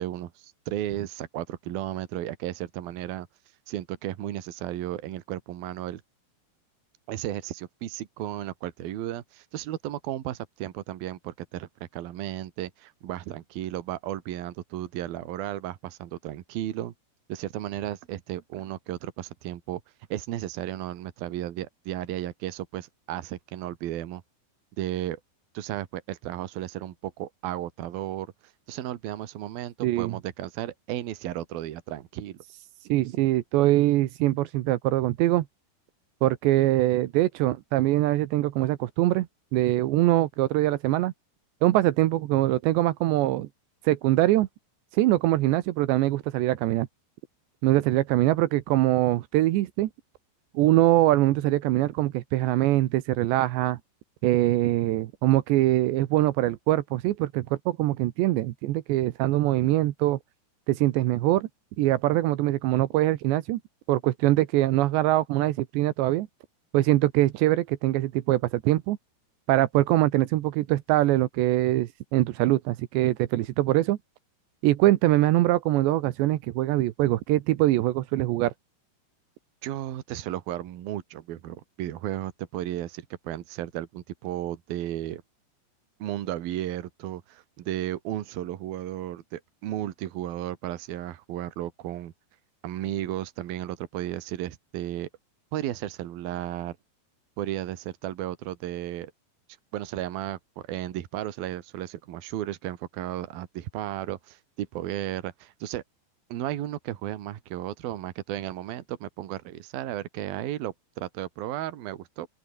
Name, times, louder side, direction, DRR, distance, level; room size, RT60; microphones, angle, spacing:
voice 1, 0.0-3.3 3.7-6.0 7.1-16.9 17.3-19.8 20.1-24.2 24.8-25.2 25.5-28.3 28.7-32.4 79.6-85.2 86.0-92.1 92.6-95.1 95.5-96.8 97.4-99.1 99.7-105.8 106.3-112.3, right 13 dB, 65° right, 3.2 m, -34 dB
voice 2, 29.8-30.1 32.9-35.5 36.2-39.3 39.5-41.1 41.6-43.5 43.8-44.5 44.9-46.9 47.6-49.9 50.5-53.8 54.2-60.2 60.7-61.5 61.8-63.6 63.9-66.3 66.7-69.0 69.5-74.0 74.6-78.5, right 16 dB, 85° right, 3.3 m, -23 dB
open air
omnidirectional pair, 5.0 m